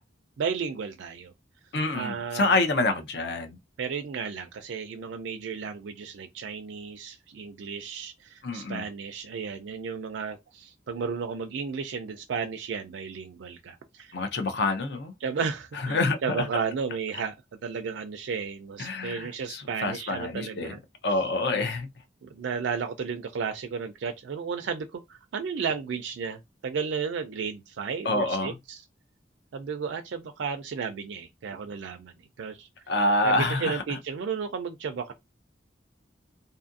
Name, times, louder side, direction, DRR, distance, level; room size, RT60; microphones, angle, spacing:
voice 1, 0.4-1.3 1.9-2.5 3.8-14.2 15.2-17.4 17.6-20.8 21.5-21.6 22.2-28.5 29.5-32.7 33.2-35.1, right 6 dB, 75° right, 0.4 m, -33 dB
voice 2, 1.7-3.6 8.4-8.8 14.1-15.1 15.7-16.5 18.8-20.7 21.0-21.9 28.0-28.5 32.9-34.0, left 2 dB, 55° left, 0.6 m, -27 dB
2.6 x 2.5 x 2.5 m
head